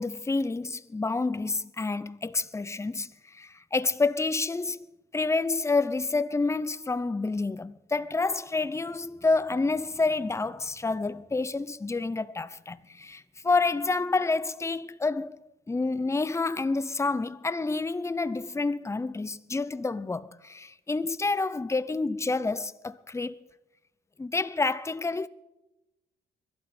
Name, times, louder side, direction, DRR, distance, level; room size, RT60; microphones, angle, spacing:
voice 1, 0.0-4.9 5.1-15.4 15.7-23.4 24.2-25.3, left 3 dB, 15° left, 0.6 m, -28 dB
22.0 x 12.0 x 4.4 m
cardioid pair, 90°, 20 cm